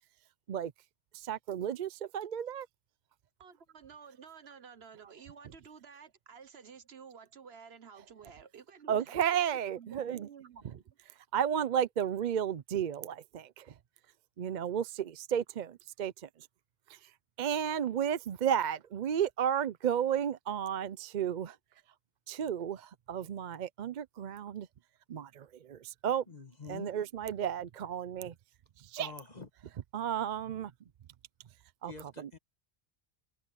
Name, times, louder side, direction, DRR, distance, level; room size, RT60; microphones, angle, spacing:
voice 1, 1.1-2.7 8.9-10.3 11.3-13.7 14.4-16.3 16.9-17.1 17.4-21.6 22.3-24.7 25.1-26.2 26.7-28.3 28.8-29.1 29.9-30.7 31.8-32.3, right 9 dB, 55° right, 0.6 m, -33 dB
voice 2, 3.4-11.0, right 6 dB, 70° right, 1.4 m, -52 dB
voice 3, 26.3-26.9 29.0-29.5 31.8-32.4, left 3 dB, 40° left, 1.7 m, -46 dB
omnidirectional pair, 1.1 m